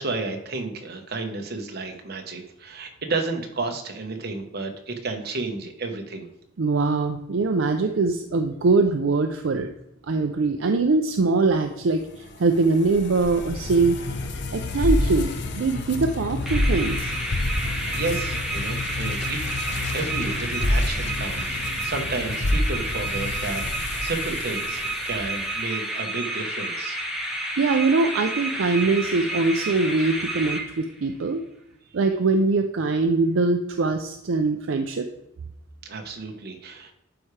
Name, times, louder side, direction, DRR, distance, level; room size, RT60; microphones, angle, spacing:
voice 1, 0.0-6.3 17.9-27.0 35.8-36.9, right 3 dB, 55° right, 4 dB, 1.2 m, -32 dB
voice 2, 6.6-9.7 10.1-14.0 14.5-17.1 27.6-31.4 31.9-35.1, right 3 dB, 75° right, 5 dB, 0.5 m, -22 dB
sound 1, 12.1-25.5, left 1 dB, 60° left, 0.8 m, -28 dB
sound 2, 16.5-31.1, right 1 dB, ahead, 1.3 m, -30 dB
11.5 x 4.9 x 3.3 m, 0.85 s
head